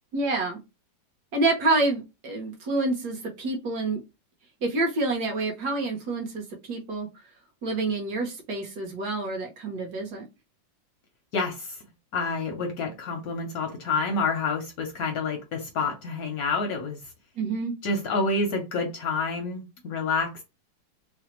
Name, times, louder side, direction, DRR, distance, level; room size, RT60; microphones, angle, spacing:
voice 1, 0.1-0.6 1.3-4.0 4.6-7.1 7.6-10.2 17.4-17.7, right 2 dB, 60° right, 1.2 m, -27 dB
voice 2, 11.3-11.8 12.1-17.1 17.8-20.4, left 3 dB, 70° left, 0.9 m, -28 dB
3.3 x 2.1 x 2.9 m
omnidirectional pair, 2.1 m